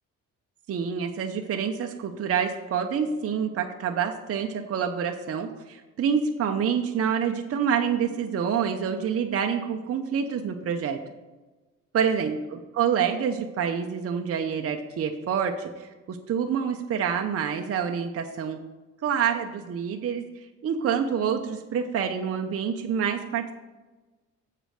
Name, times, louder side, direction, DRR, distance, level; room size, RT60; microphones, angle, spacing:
voice 1, 0.7-11.0 11.9-18.6 19.0-23.5, right 7 dB, 50° right, 4 dB, 0.8 m, -27 dB
7.6 x 5.0 x 6.4 m, 1.2 s
cardioid pair, 90°, 30 cm